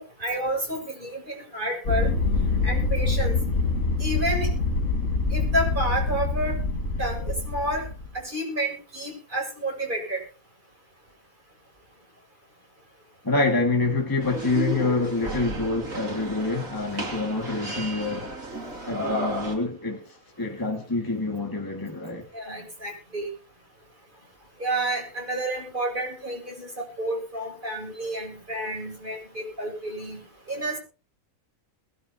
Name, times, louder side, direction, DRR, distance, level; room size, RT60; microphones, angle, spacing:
voice 1, 0.0-2.1 2.6-3.4 4.0-4.5 5.3-6.6 7.0-7.8 8.1-10.2 22.3-23.3 24.6-30.2 30.5-30.8, right 1 dB, 35° right, 8.0 m, -30 dB
sound 1, 1.9-8.1, left 3 dB, 60° left, 2.3 m, -25 dB
voice 2, 13.2-18.3 18.9-22.3, left 3 dB, 15° left, 2.1 m, -26 dB
sound 2, 14.2-19.5, right 2 dB, 70° right, 3.7 m, -33 dB
22.0 x 13.0 x 2.9 m
omnidirectional pair, 1.5 m